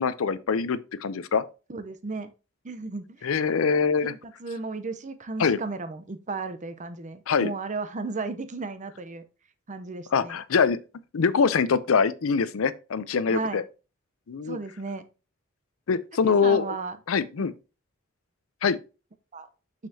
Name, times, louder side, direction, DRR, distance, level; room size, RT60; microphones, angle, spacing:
voice 1, 0.0-1.4 3.2-4.1 5.4-5.6 7.3-7.5 10.1-10.8 11.1-13.6 14.3-14.6 15.9-16.8 17.1-17.5 18.6-18.8, left 5 dB, 80° left, 0.5 m, -24 dB
voice 2, 1.7-2.3 2.6-3.3 4.0-9.2 9.7-10.4 13.3-13.6 14.5-15.0 16.3-17.0 17.4-17.5 19.3-19.5, right 3 dB, 35° right, 0.7 m, -34 dB
6.6 x 6.1 x 2.7 m
head